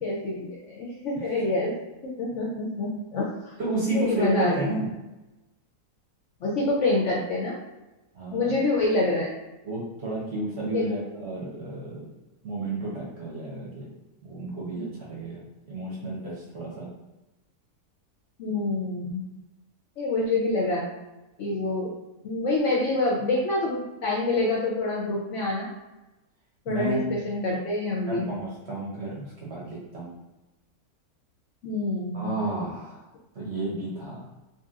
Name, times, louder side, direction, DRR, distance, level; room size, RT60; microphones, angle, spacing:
voice 1, 0.0-1.7 2.0-3.5 3.9-4.7 6.4-7.6 8.3-9.3 10.7-10.9 18.4-19.2 20.0-20.9 21.4-21.9 22.2-25.7 26.7-28.3 31.6-32.4, left 2 dB, 70° left, -4 dB, 0.7 m, -26 dB
voice 2, 3.6-4.9 8.1-8.6 9.6-12.1 12.4-13.9 14.2-16.9 26.7-27.1 28.1-30.1 32.1-33.0 33.3-34.3, right 2 dB, 55° right, -5 dB, 0.8 m, -32 dB
2.8 x 2.8 x 2.3 m, 1.0 s
omnidirectional pair, 1.6 m